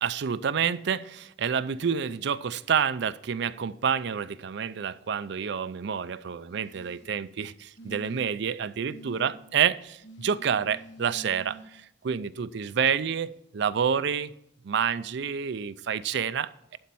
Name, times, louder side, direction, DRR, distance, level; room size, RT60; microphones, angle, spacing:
voice 1, 0.0-14.3 14.6-16.8, right 7 dB, 65° right, 14 dB, 0.4 m, -28 dB
sound 1, 6.5-7.1 7.8-8.5 8.9-9.3 10.0-11.6 12.9-13.0, right 3 dB, 75° left, 1.1 m, -46 dB
11.5 x 4.2 x 6.9 m, 0.79 s
head